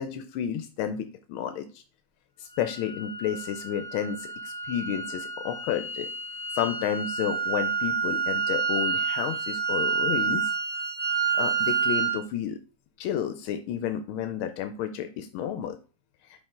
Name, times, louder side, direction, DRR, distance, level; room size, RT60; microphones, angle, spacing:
voice 1, 0.0-1.6 2.4-6.1 6.5-10.4 11.4-12.6 13.0-15.8, left 9 dB, 85° left, 9 dB, 1.4 m, -31 dB
sound 1, 2.5-12.2, right 6 dB, 30° left, 1.9 m, -29 dB
5.4 x 5.1 x 3.7 m, 0.36 s
omnidirectional pair, 2.3 m